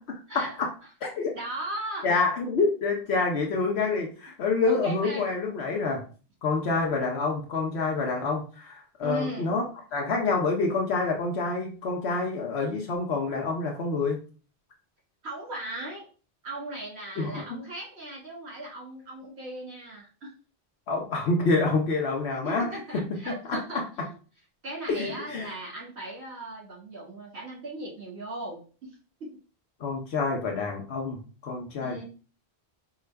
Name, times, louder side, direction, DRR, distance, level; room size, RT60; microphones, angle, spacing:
voice 1, 0.3-0.7 1.0-1.3 2.0-6.0 6.4-9.6 9.9-14.2 17.2-17.6 20.9-23.8 24.9-25.5 29.8-32.0, left 3 dB, 70° left, 1 dB, 1.0 m, -27 dB
voice 2, 1.3-2.2 4.6-5.3 9.0-9.6 15.2-16.1 16.4-20.3 22.3-23.9 24.6-28.9 29.2-29.3 31.8-32.0, right 2 dB, 70° right, -3 dB, 1.8 m, -37 dB
4.6 x 2.5 x 3.3 m, 0.37 s
omnidirectional pair, 1.1 m